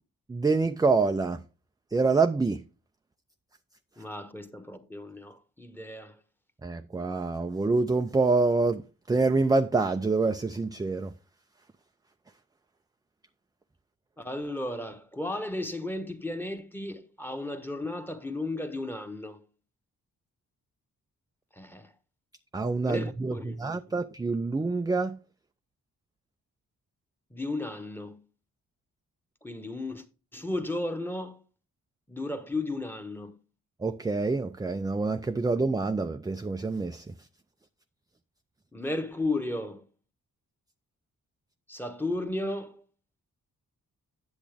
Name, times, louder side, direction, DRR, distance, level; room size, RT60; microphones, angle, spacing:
voice 1, 0.3-1.4 1.9-2.6 6.6-8.8 9.1-11.1 22.5-23.3 23.6-25.2 33.8-37.0, right 3 dB, 10° right, 0.4 m, -26 dB
voice 2, 4.0-6.2 14.2-19.4 21.5-21.9 22.8-23.6 27.3-28.3 29.4-30.0 30.3-31.4 32.1-33.4 38.7-39.9 41.7-42.8, left 2 dB, 5° left, 1.2 m, -34 dB
8.4 x 7.1 x 3.4 m
cardioid pair, 55°, 35 cm